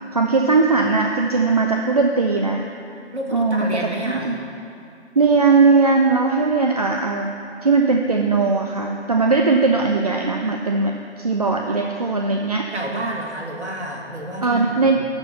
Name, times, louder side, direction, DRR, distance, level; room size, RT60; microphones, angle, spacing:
voice 1, 0.1-2.6 3.3-3.7 4.2-4.4 5.2-7.3 7.6-12.7 14.4-15.0, right 4 dB, 35° right, 2 dB, 0.4 m, -19 dB
voice 2, 3.1-4.3 12.7-14.9, right 1 dB, 70° right, 0 dB, 1.8 m, -29 dB
12.0 x 4.4 x 6.9 m, 2.6 s
figure-of-eight pair, 140°, 35 cm